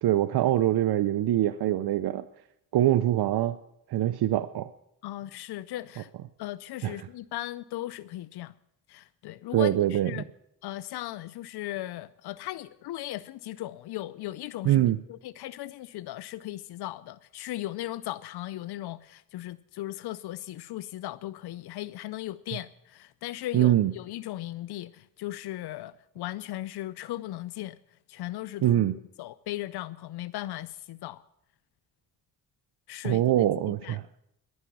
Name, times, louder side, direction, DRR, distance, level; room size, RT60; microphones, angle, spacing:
voice 1, 0.0-2.2 2.7-3.6 3.9-4.7 6.8-7.1 9.5-10.2 14.6-15.0 23.5-23.9 28.6-29.0 33.0-34.1, right 13 dB, 80° right, 0.6 m, -24 dB
voice 2, 5.0-6.1 6.4-8.5 8.9-10.2 10.6-14.8 15.1-27.8 28.1-28.9 29.2-31.2 32.9-34.0, left 15 dB, 85° left, 0.5 m, -37 dB
11.0 x 9.6 x 8.4 m
cardioid pair, 75°, 38 cm